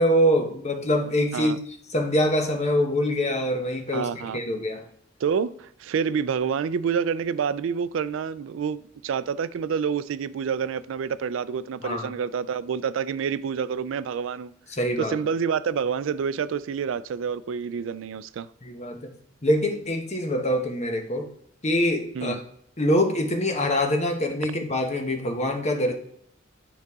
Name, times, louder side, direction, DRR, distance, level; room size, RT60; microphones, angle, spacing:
voice 1, 0.0-1.6 1.9-4.9 11.8-12.1 14.7-15.1 18.6-19.1 19.4-21.3 21.6-22.4 22.8-25.9, equal, 35° left, 1.0 m, -24 dB
voice 2, 3.9-4.4 5.2-14.5 15.0-18.5 22.1-22.4, right 6 dB, 70° right, 0.3 m, -28 dB
9.4 x 3.9 x 3.6 m
head